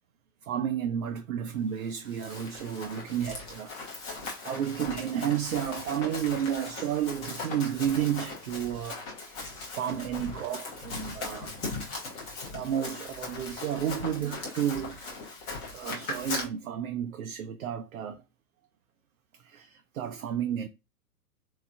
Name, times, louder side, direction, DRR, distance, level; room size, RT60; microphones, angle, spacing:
voice 1, 0.4-3.8 4.2-11.5 12.5-15.1 15.7-18.2 19.4-20.7, right 9 dB, 60° right, 0.5 m, -32 dB
Run, 1.9-16.4, left 3 dB, 10° left, 0.5 m, -39 dB
3.6 x 3.0 x 2.3 m
figure-of-eight pair, 115°, 48 cm